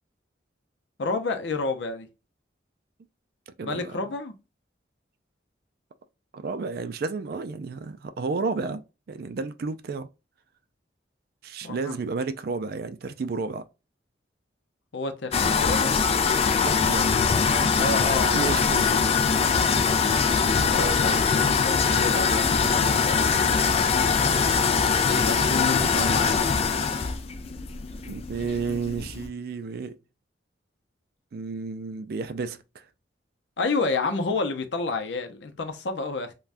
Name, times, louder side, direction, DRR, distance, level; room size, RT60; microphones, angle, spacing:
voice 1, 1.0-2.1 3.6-4.3 11.6-12.0 14.9-16.0 17.8-19.9 20.7-21.2 21.6-23.3 25.0-27.1 33.6-36.3, left 3 dB, 75° left, 0.6 m, -30 dB
voice 2, 3.5-4.0 6.3-8.8 9.1-10.1 11.4-13.6 16.6-17.1 18.3-19.2 28.1-30.0 31.3-32.8, right 4 dB, 55° right, 0.4 m, -32 dB
sound 1, 15.3-29.3, left 5 dB, 35° left, 0.3 m, -22 dB
3.3 x 2.2 x 2.5 m
head